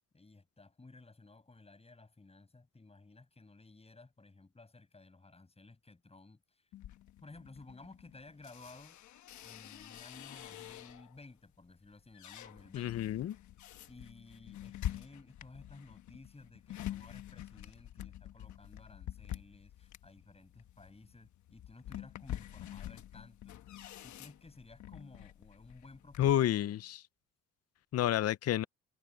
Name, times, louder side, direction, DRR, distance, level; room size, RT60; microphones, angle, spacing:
voice 1, 0.1-6.7 7.2-9.0 9.4-13.0 13.9-26.3, left 3 dB, 20° left, 6.2 m, -56 dB
sound 1, 6.7-11.2 11.7-26.4, left 12 dB, 75° left, 1.2 m, -47 dB
voice 2, 12.7-13.3 26.2-27.0 27.9-28.6, left 12 dB, 55° left, 0.6 m, -30 dB
cardioid pair, 90°, 30 cm